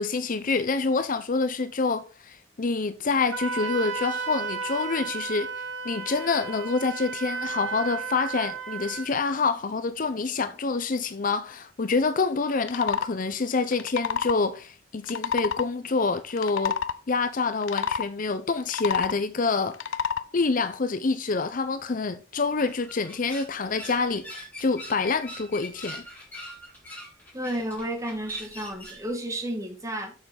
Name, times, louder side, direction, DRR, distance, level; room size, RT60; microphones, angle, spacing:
voice 1, 0.0-5.5 5.8-16.8 17.1-19.8 20.3-26.0, left 4 dB, 45° left, 0.6 m, -27 dB
Wind instrument woodwind instrument, 3.3-9.1, right 5 dB, 80° right, 1.8 m, -33 dB
sound 1, 12.6-13.1 13.7-14.4 15.0-15.7 16.3-17.0 17.6-18.0 18.6-19.2 19.7-20.2, left 6 dB, 85° left, 0.6 m, -28 dB
sound 2, 22.5-29.1, left 1 dB, 10° left, 3.9 m, -43 dB
voice 2, 27.3-30.1, right 1 dB, 15° right, 1.7 m, -32 dB
7.1 x 6.4 x 5.2 m
head